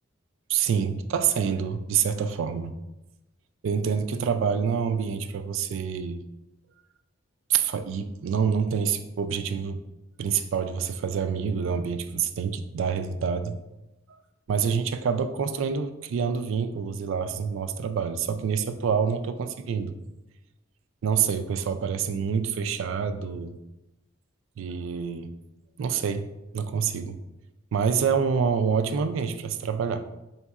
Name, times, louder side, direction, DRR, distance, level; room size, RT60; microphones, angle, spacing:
voice 1, 0.5-2.7 3.6-6.2 7.5-9.8 10.2-13.6 14.5-20.0 21.0-23.6 24.6-25.3 25.8-26.3 26.5-27.2 27.7-30.0, right 6 dB, 70° right, 9 dB, 0.3 m, -27 dB
4.0 x 3.6 x 2.3 m, 0.97 s
head